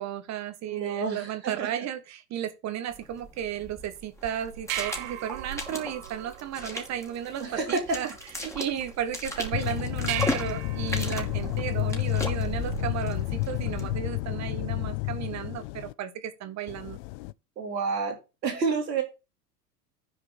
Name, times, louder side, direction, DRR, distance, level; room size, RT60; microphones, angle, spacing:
voice 1, 0.0-8.1 8.4-17.0, right 10 dB, 35° right, 1.5 m, -34 dB
voice 2, 0.7-1.7 7.4-8.0 17.6-19.0, right 4 dB, 85° right, 3.4 m, -29 dB
sound 1, 2.9-13.9, left 1 dB, 5° left, 2.6 m, -38 dB
sound 2, 4.2-14.2, right 13 dB, 55° right, 1.3 m, -39 dB
sound 3, 9.5-15.9 16.7-17.3, left 20 dB, 45° left, 0.5 m, -30 dB
10.5 x 4.9 x 6.1 m
hypercardioid pair, 100°, 48 cm